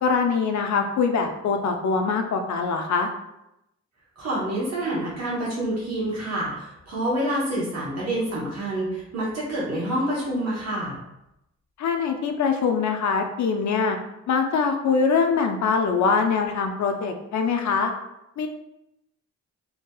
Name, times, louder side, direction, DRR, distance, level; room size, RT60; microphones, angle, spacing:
voice 1, 0.0-3.1 11.8-14.0 14.3-17.9 18.4-18.5, left 5 dB, 75° left, 5 dB, 0.5 m, -23 dB
voice 2, 4.2-11.0, right 1 dB, 65° right, -6 dB, 1.0 m, -27 dB
2.7 x 2.7 x 2.3 m, 0.86 s
cardioid pair, 75°, 29 cm